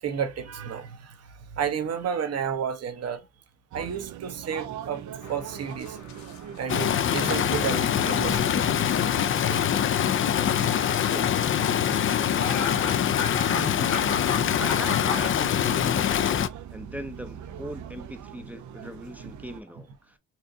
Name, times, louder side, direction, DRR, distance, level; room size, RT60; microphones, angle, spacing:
voice 1, 0.0-3.3 3.7-5.0 5.3-6.0 6.6-8.5 9.5-9.7 19.2-19.3, right 7 dB, 55° right, 1.0 m, -31 dB
sound 1, 3.7-19.6, right 9 dB, 70° right, 0.7 m, -41 dB
sound 2, 5.2-10.3 10.9-11.2 11.9-12.0 12.4-15.2, left 5 dB, 70° left, 1.2 m, -36 dB
Stream, 6.7-16.5, left 9 dB, 45° left, 0.4 m, -24 dB
voice 2, 11.1-11.5 13.5-13.9 14.6-20.2, equal, 5° right, 0.6 m, -40 dB
4.5 x 2.5 x 2.6 m
cardioid pair, 90°, 30 cm